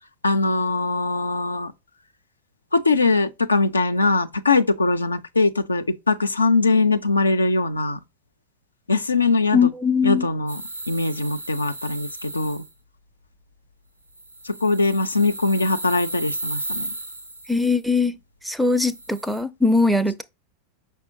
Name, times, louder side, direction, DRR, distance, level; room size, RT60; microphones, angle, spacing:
voice 1, 0.2-1.7 2.7-8.0 8.9-9.7 10.0-12.6 14.4-16.9, left 3 dB, 80° left, 0.4 m, -21 dB
voice 2, 9.5-10.3 17.5-18.2 18.4-20.2, left 4 dB, ahead, 0.4 m, -20 dB
sound 1, 10.5-12.7 14.2-17.7 18.7-19.4, right 2 dB, 90° right, 1.7 m, -34 dB
5.5 x 3.4 x 2.6 m
figure-of-eight pair, 90°, 0 cm